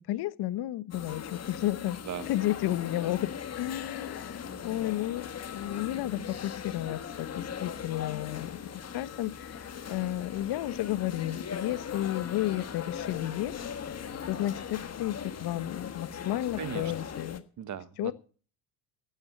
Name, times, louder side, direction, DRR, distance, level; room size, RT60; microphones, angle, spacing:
voice 1, 0.1-2.0 2.3-13.6 13.9-17.4 18.0-18.1, left 14 dB, 55° left, 1.0 m, -32 dB
sound 1, 0.9-17.4, left 7 dB, 35° left, 1.4 m, -39 dB
voice 2, 16.6-16.9 17.6-18.1, right 9 dB, 40° right, 1.3 m, -37 dB
12.5 x 9.5 x 7.9 m
supercardioid pair, 95°, 47 cm